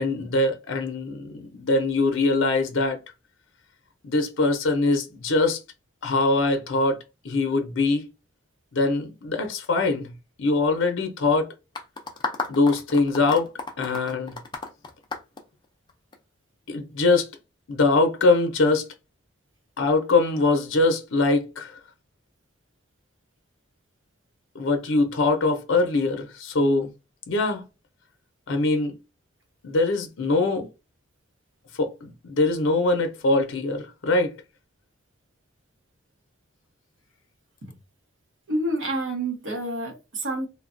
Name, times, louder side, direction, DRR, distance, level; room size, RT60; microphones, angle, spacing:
voice 1, 0.0-3.0 4.0-5.6 6.0-7.0 7.2-8.0 8.7-11.5 12.5-13.5 13.8-14.4 16.7-17.3 17.7-18.9 19.8-21.7 24.5-26.9 27.3-27.6 28.5-29.0 29.6-30.7 31.7-34.3, left 3 dB, 75° left, 0.6 m, -23 dB
sound 1, 11.7-16.1, left 3 dB, 20° left, 0.4 m, -33 dB
voice 2, 38.5-40.5, right 1 dB, 65° right, 1.0 m, -28 dB
3.1 x 2.2 x 2.5 m
head